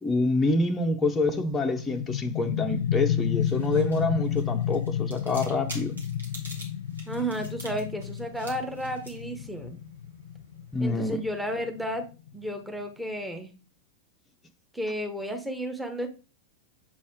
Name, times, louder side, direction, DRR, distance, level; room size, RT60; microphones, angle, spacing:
voice 1, 0.0-6.0 10.7-11.2, left 2 dB, 15° left, 0.7 m, -26 dB
sound 1, 1.0-12.5, left 9 dB, 60° left, 0.3 m, -32 dB
sound 2, 3.1-11.6, right 1 dB, 75° right, 2.1 m, -48 dB
voice 2, 7.1-9.8 10.8-12.1 12.3-13.5 14.7-16.1, equal, 5° right, 1.1 m, -32 dB
7.4 x 4.1 x 3.6 m
figure-of-eight pair, 90°, 0 cm